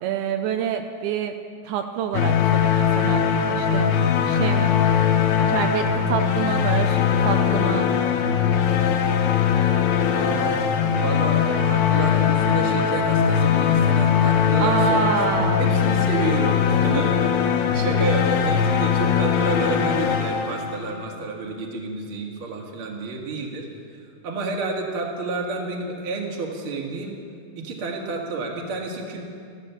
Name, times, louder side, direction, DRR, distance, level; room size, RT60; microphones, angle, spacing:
voice 1, 0.0-1.3 1.7-3.9 4.3-4.7 5.5-7.9 14.6-15.8 16.8-17.1, right 8 dB, 85° right, 6 dB, 2.5 m, -27 dB
sound 1, 2.1-21.1, left 7 dB, 80° left, 2.8 m, -20 dB
voice 2, 10.1-10.6 11.0-15.2 15.6-17.3 17.7-23.7 24.2-27.2 27.6-29.2, right 3 dB, 45° right, 0 dB, 2.1 m, -30 dB
14.5 x 13.0 x 6.9 m, 2.3 s
omnidirectional pair, 4.6 m